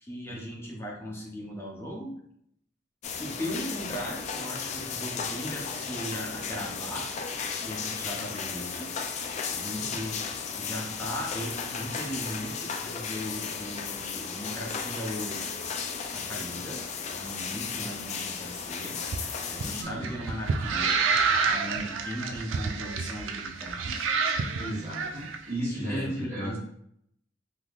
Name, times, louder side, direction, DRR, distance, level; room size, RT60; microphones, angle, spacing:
voice 1, 0.0-2.1 3.2-7.1 7.6-8.9 9.5-10.2 10.6-15.5 16.1-16.9 17.1-19.0 19.5-21.0 21.4-24.1 25.7-26.6, equal, 15° left, -3 dB, 0.7 m, -37 dB
sound 1, 3.0-19.8, left 6 dB, 35° left, 0.3 m, -35 dB
voice 2, 9.6-9.9 19.6-20.1 24.6-26.6, equal, 40° right, -8 dB, 1.3 m, -35 dB
sound 2, 19.0-25.4, right 5 dB, 80° right, 0.4 m, -29 dB
3.5 x 2.9 x 2.3 m, 0.70 s
head